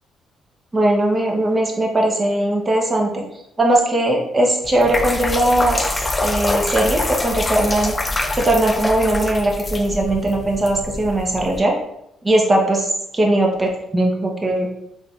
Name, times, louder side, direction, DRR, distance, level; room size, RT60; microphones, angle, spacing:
voice 1, 0.7-3.2 3.6-5.9 6.2-8.0 8.3-11.7 12.2-14.7, right 1 dB, 25° right, 0 dB, 0.8 m, -19 dB
sound 1, 4.6-11.6, left 2 dB, 25° left, 0.4 m, -25 dB
3.9 x 2.6 x 2.3 m, 0.79 s
cardioid pair, 90°, 0 cm